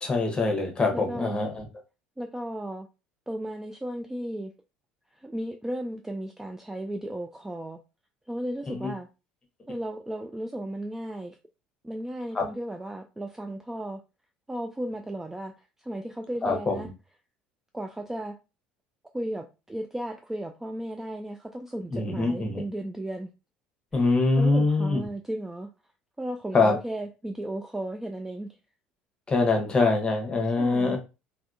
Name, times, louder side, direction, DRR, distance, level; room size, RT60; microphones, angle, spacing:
voice 1, 0.0-1.6 8.7-8.9 12.3-12.5 16.4-16.8 21.9-22.6 23.9-25.0 26.5-26.7 29.3-31.0, left 3 dB, 20° left, 1.0 m, -24 dB
voice 2, 0.9-1.4 2.2-2.9 3.3-4.5 5.1-7.8 8.3-9.1 9.7-11.4 11.8-14.0 14.5-16.9 17.7-18.4 19.1-23.3 24.0-25.7 26.2-28.5 30.6-31.0, right 1 dB, 10° right, 0.3 m, -35 dB
3.4 x 2.3 x 2.4 m
figure-of-eight pair, 60°, 5 cm